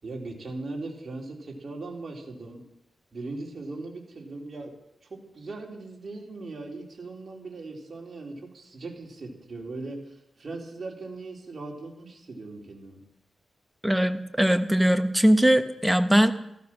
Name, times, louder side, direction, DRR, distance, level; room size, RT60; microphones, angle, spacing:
voice 1, 0.0-2.6 3.1-4.7 5.1-13.0, right 3 dB, 45° right, -1 dB, 4.3 m, -39 dB
voice 2, 13.8-16.3, equal, 5° right, 8 dB, 1.3 m, -21 dB
15.0 x 13.5 x 6.3 m, 0.82 s
cardioid pair, 75°, 0 cm